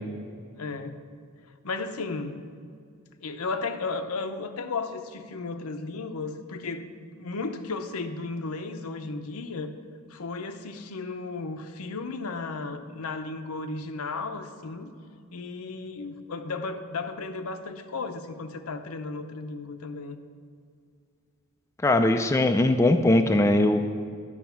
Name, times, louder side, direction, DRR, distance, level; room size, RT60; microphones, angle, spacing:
voice 1, 0.6-1.0 1.6-2.4 3.2-9.7 10.1-14.9 15.3-20.2, left 3 dB, 80° left, 8 dB, 0.7 m, -34 dB
voice 2, 21.8-23.8, left 1 dB, 15° left, 6 dB, 0.3 m, -20 dB
11.0 x 6.3 x 5.8 m, 2.3 s
head